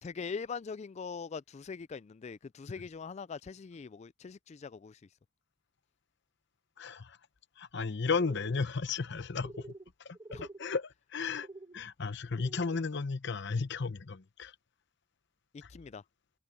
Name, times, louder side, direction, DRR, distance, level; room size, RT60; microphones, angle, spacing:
voice 1, 0.0-5.0 10.3-10.4 15.5-16.0, left 5 dB, 30° left, 0.3 m, -42 dB
voice 2, 6.8-7.2 7.6-9.7 10.0-10.2 10.6-11.5 11.7-14.5, left 4 dB, 55° left, 0.8 m, -34 dB
sound 1, 8.2-8.7 9.4-9.9 10.1-10.6 11.3-11.8 12.3-12.8, right 2 dB, 20° right, 1.3 m, -48 dB
head